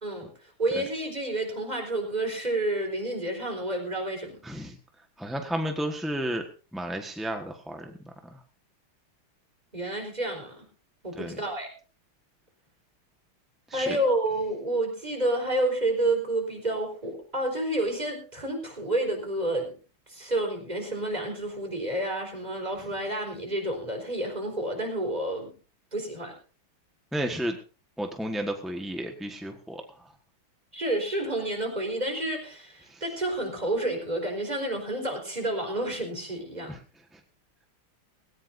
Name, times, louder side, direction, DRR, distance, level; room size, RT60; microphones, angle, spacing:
voice 1, 0.0-4.4 9.7-10.6 11.0-11.7 13.7-19.8 20.1-25.5 25.9-26.3 30.7-36.7, right 1 dB, 20° right, 2 dB, 4.4 m, -29 dB
voice 2, 4.4-4.7 5.2-6.5 6.7-7.9 11.1-11.4 13.7-14.0 27.1-27.6 28.0-29.8 32.9-33.0 36.7-36.8, equal, ahead, 3 dB, 0.8 m, -32 dB
18.0 x 18.0 x 2.6 m, 0.36 s
omnidirectional pair, 2.4 m